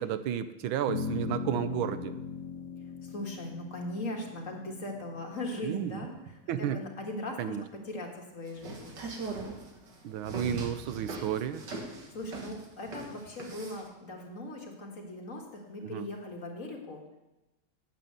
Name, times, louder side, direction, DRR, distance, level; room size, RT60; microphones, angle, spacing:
voice 1, 0.0-2.2 5.6-6.0 6.5-6.8 7.4-7.6 10.0-11.6 15.8-16.1, right 9 dB, 85° right, 11 dB, 1.5 m, -32 dB
sound 1, 0.9-7.4, left 5 dB, 65° left, 1.2 m, -40 dB
voice 2, 3.0-7.6 7.9-9.0 12.1-17.2, left 1 dB, 40° left, 1 dB, 1.9 m, -39 dB
sound 2, 8.5-13.9, right 3 dB, 60° right, 2.2 m, -40 dB
9.4 x 7.5 x 8.0 m, 1.0 s
omnidirectional pair, 2.2 m